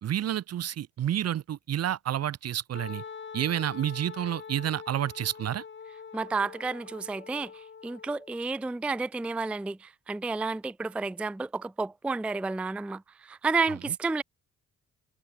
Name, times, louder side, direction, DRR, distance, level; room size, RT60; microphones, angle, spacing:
voice 1, 0.0-3.0 3.3-5.6, right 11 dB, 55° right, 0.9 m, -30 dB
Wind instrument woodwind instrument, 2.7-8.4, left 6 dB, 40° left, 3.5 m, -44 dB
voice 2, 6.1-14.2, right 4 dB, 5° right, 0.4 m, -31 dB
cardioid pair, 90°, 30 cm